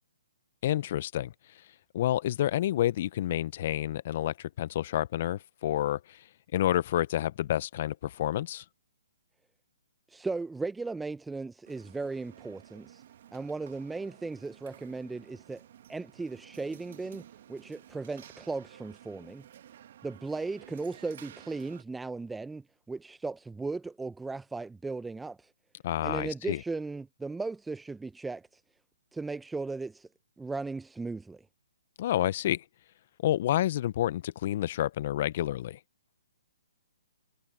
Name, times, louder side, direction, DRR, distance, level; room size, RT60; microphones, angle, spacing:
voice 1, 0.6-1.3 1.9-6.2 6.5-8.6 25.8-26.6 32.0-32.6 33.2-35.8, left 12 dB, 45° left, 1.0 m, -29 dB
voice 2, 10.1-13.0 13.3-15.6 15.9-19.4 20.0-25.5 26.0-28.6 29.1-30.1 30.4-31.4, right 3 dB, 5° right, 0.8 m, -37 dB
sound 1, 11.6-21.8, right 10 dB, 50° right, 2.4 m, -53 dB
hypercardioid pair, 135°, 0 cm